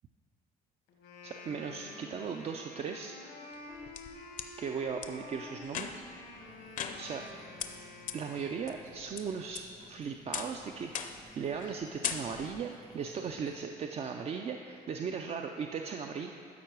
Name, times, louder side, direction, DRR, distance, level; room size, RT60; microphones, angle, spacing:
Wind instrument woodwind instrument, 0.9-9.0, left 2 dB, 85° left, 1.2 m, -49 dB
voice 1, 1.2-3.2 4.6-6.0 7.0-7.2 8.1-16.3, right 6 dB, 40° right, 3 dB, 0.4 m, -37 dB
sound 1, 3.5-4.5 5.0-5.1 5.7-6.2 6.8-7.3 7.6-7.7 8.1-8.2 8.7-9.2 9.5-9.9 10.3-10.6 10.9-11.3 11.6-11.8 12.0-12.6, left 8 dB, 50° left, 0.6 m, -38 dB
sound 2, 6.2-13.6, equal, 70° right, 2.2 m, -58 dB
12.5 x 4.5 x 4.6 m, 2.4 s
cardioid pair, 110°, 17 cm